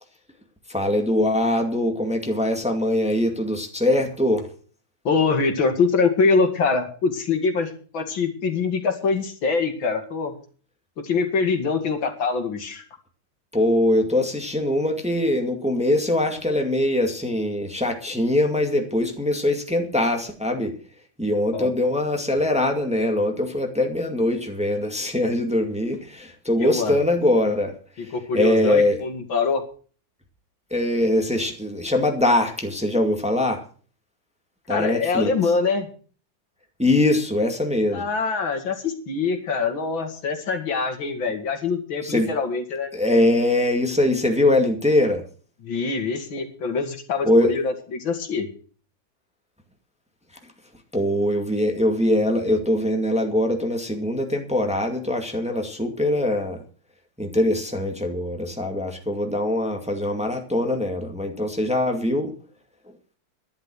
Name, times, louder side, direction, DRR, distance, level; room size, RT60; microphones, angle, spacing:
voice 1, 0.7-4.5 13.5-20.7 21.2-27.7 28.0-29.0 30.7-33.6 34.7-35.3 36.8-38.0 42.0-42.3 42.9-45.2 47.2-47.6 50.9-56.6 57.2-62.3, left 1 dB, 5° right, 4 dB, 2.0 m, -22 dB
voice 2, 5.0-10.3 11.0-12.8 21.5-21.7 26.6-27.0 28.0-29.6 34.7-35.9 37.9-42.9 45.6-48.5, left 4 dB, 75° left, 7 dB, 2.7 m, -24 dB
12.0 x 11.0 x 6.3 m, 0.42 s
omnidirectional pair, 2.1 m